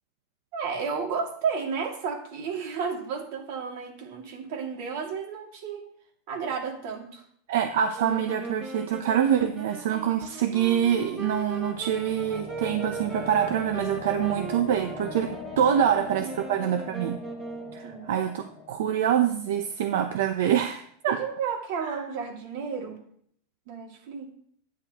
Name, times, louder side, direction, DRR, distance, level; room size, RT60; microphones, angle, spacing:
voice 1, 0.5-5.8 6.3-7.2 15.5-15.7 16.1-16.3 17.8-18.1 21.1-23.0 23.7-24.3, right 6 dB, 55° right, 1 dB, 2.4 m, -32 dB
voice 2, 7.5-17.2 17.7-21.2 21.8-22.0, right 9 dB, 75° right, 7 dB, 0.7 m, -25 dB
sound 1, 7.9-17.9, right 3 dB, 15° right, 1.0 m, -39 dB
sound 2, 10.0-20.2, left 5 dB, 35° left, 1.4 m, -42 dB
10.0 x 9.6 x 3.0 m, 0.63 s
supercardioid pair, 160°, 0 cm